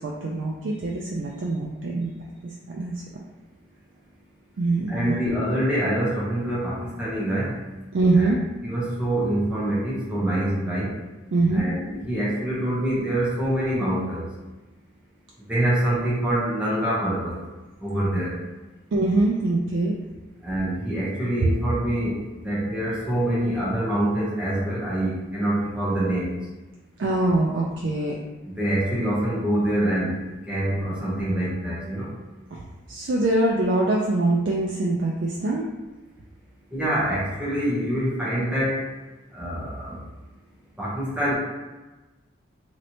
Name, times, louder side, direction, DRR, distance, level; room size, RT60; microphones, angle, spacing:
voice 1, 0.0-2.1 2.4-2.9 4.6-5.1 7.9-8.4 11.3-11.6 18.9-19.9 27.0-28.2 32.5-35.7, right 2 dB, 70° right, -2 dB, 0.4 m, -23 dB
voice 2, 4.9-7.6 8.2-8.3 8.6-10.9 11.5-14.3 15.5-17.4 17.8-18.3 20.4-26.3 28.5-32.1 36.7-38.8 39.3-40.0 40.8-41.3, right 1 dB, 5° right, -8 dB, 0.9 m, -25 dB
3.1 x 2.8 x 2.8 m, 1.2 s
head